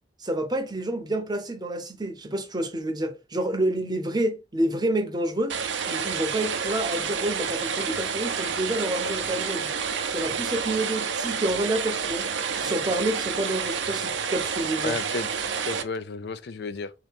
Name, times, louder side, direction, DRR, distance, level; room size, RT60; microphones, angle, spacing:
voice 1, 0.2-5.6 5.9-9.7 10.1-12.3 12.6-14.9, right 1 dB, 25° right, 0.7 m, -28 dB
sound 1, 5.5-15.8, right 6 dB, 80° right, 0.6 m, -29 dB
voice 2, 14.8-16.9, left 4 dB, 60° left, 0.4 m, -33 dB
3.8 x 2.9 x 3.5 m
head